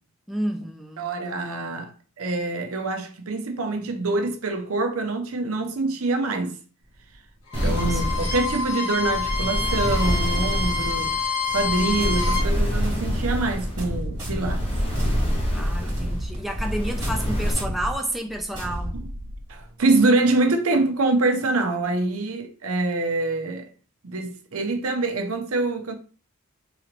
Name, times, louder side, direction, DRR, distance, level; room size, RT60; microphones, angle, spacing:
voice 1, 0.3-1.1 1.4-1.6 7.6-8.1 15.5-19.0, right 1 dB, ahead, 0.3 m, -31 dB
voice 2, 1.0-1.9 2.2-6.6 7.6-11.2 11.5-14.7 18.9-19.0 19.5-23.7 24.0-25.9, right 2 dB, 70° right, 0.7 m, -25 dB
Bowed string instrument, 7.5-12.5, left 4 dB, 75° left, 1.5 m, -27 dB
sound 1, 7.5-17.5, equal, 25° left, 1.1 m, -26 dB
sound 2, 12.0-19.6, equal, 20° right, 2.1 m, -32 dB
4.0 x 3.0 x 2.9 m
head